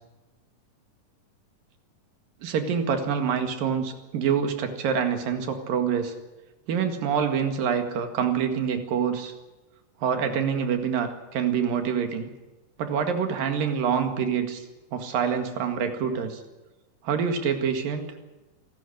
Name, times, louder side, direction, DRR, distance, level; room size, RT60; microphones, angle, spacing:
voice 1, 2.4-6.1 6.7-9.3 10.0-12.3 12.8-14.7 14.9-16.4 17.0-18.1, right 7 dB, 85° right, 6 dB, 3.7 m, -26 dB
26.5 x 12.5 x 10.0 m, 1.1 s
omnidirectional pair, 3.9 m